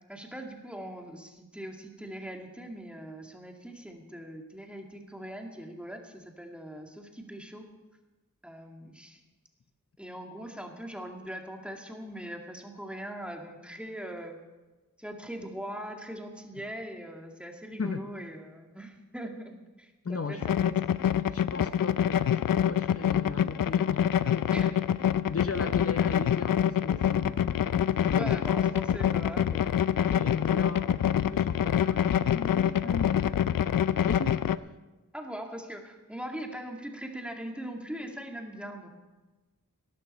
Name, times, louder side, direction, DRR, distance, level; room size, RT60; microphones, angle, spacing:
voice 1, 0.1-7.7 8.4-9.2 10.0-14.4 15.0-20.7 24.5-24.9 28.1-29.7 35.1-38.9, equal, 5° right, 2 dB, 2.0 m, -41 dB
voice 2, 20.0-20.4 21.3-24.7 25.3-28.4 30.1-33.3 33.6-34.4, left 4 dB, 45° left, 10 dB, 0.8 m, -37 dB
sound 1, 20.4-34.6, left 10 dB, 80° left, 0.5 m, -26 dB
18.5 x 12.0 x 4.2 m, 1.2 s
wide cardioid pair, 65°, 33 cm